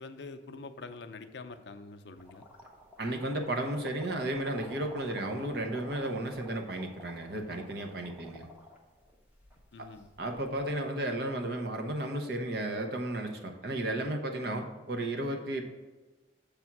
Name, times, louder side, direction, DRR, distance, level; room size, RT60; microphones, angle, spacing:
voice 1, 0.0-2.4 9.7-10.1, left 3 dB, 65° left, 8 dB, 0.5 m, -45 dB
sound 1, 2.1-10.7, equal, 5° right, 0.8 m, -52 dB
voice 2, 3.0-8.5 9.8-9.9 10.2-15.6, right 1 dB, 55° right, 4 dB, 0.8 m, -33 dB
7.2 x 3.4 x 5.9 m, 1.2 s
head